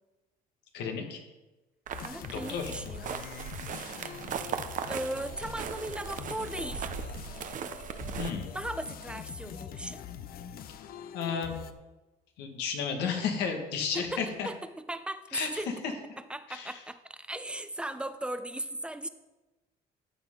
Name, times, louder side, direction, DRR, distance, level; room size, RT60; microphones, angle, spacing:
voice 1, 0.7-1.2 2.3-2.7 8.2-8.5 11.1-11.5 12.4-14.5 15.3-15.9 16.5-16.8, left 6 dB, 85° left, 4 dB, 1.8 m, -33 dB
sound 1, 1.9-11.7, left 9 dB, 60° left, 0.7 m, -43 dB
sound 2, 1.9-8.3, right 8 dB, 50° right, 0.7 m, -38 dB
voice 2, 2.0-3.2 4.9-6.9 8.5-10.0 13.9-14.2 14.4-14.6 14.9-15.7 16.3-19.1, right 1 dB, 5° right, 10 dB, 0.6 m, -37 dB
13.0 x 7.9 x 3.8 m, 1.1 s
cardioid pair, 110°, 17 cm